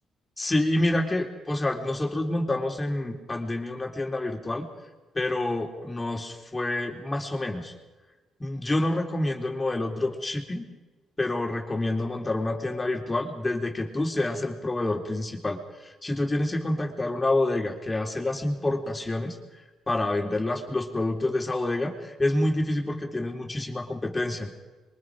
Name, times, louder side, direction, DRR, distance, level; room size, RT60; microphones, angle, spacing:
voice 1, 0.4-4.7 5.2-7.7 8.4-10.7 11.2-19.4 19.9-24.5, left 2 dB, 20° left, 3 dB, 3.7 m, -28 dB
26.5 x 23.5 x 5.1 m, 1.2 s
cardioid pair, 90°, 0 cm